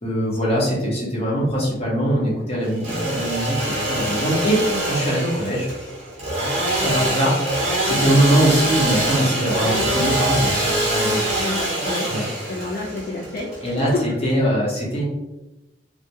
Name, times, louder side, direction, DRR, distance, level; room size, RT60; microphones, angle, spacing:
voice 1, 0.0-5.7 6.8-11.3 12.1-12.2 13.6-15.0, equal, 35° left, -5 dB, 0.8 m, -22 dB
Engine / Sawing, 2.6-14.3, right 1 dB, 35° right, 0.8 m, -24 dB
voice 2, 11.4-12.1 12.5-14.2, left 2 dB, 55° left, -4 dB, 0.4 m, -29 dB
2.3 x 2.1 x 2.7 m, 0.98 s
head